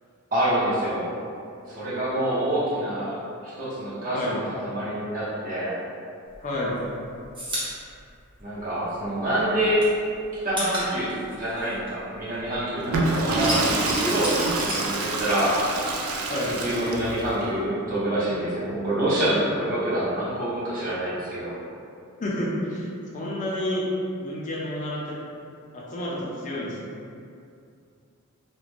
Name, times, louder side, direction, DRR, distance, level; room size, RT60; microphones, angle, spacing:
voice 1, 0.3-1.1 1.7-5.7 8.4-9.8 10.4-15.5 16.5-21.5, right 1 dB, 40° right, -10 dB, 0.9 m, -26 dB
sound 1, 6.3-9.1 9.4-12.7 13.0-15.6 15.9-17.0, equal, 25° right, 0.7 m, -34 dB
voice 2, 6.4-6.8 16.3-16.5 22.2-22.9 23.1-23.9 24.2-25.1 25.7-27.0, left 1 dB, 35° left, -5 dB, 0.4 m, -30 dB
Water / Toilet flush, 12.8-17.3, right 2 dB, 75° right, 0.4 m, -27 dB
2.4 x 2.1 x 3.2 m, 2.5 s
head